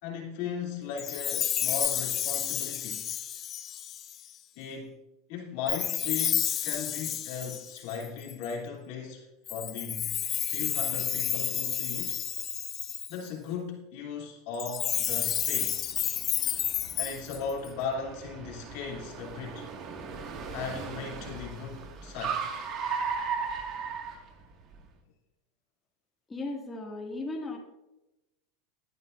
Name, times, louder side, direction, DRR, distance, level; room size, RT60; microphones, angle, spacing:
voice 1, 0.0-3.1 4.5-5.0 5.3-10.1 10.5-12.2 13.1-15.8 16.9-19.7 20.5-22.5, left 6 dB, 65° left, -1 dB, 3.1 m, -37 dB
Chime, 1.0-4.3 5.7-8.5 9.5-13.3 14.5-17.7, left 10 dB, 35° left, 0.6 m, -31 dB
Car, 15.0-24.8, right 5 dB, 45° right, 2.0 m, -37 dB
voice 2, 26.3-27.6, left 2 dB, 15° left, -1 dB, 2.2 m, -36 dB
18.0 x 10.0 x 2.6 m, 0.96 s
supercardioid pair, 125°, 0 cm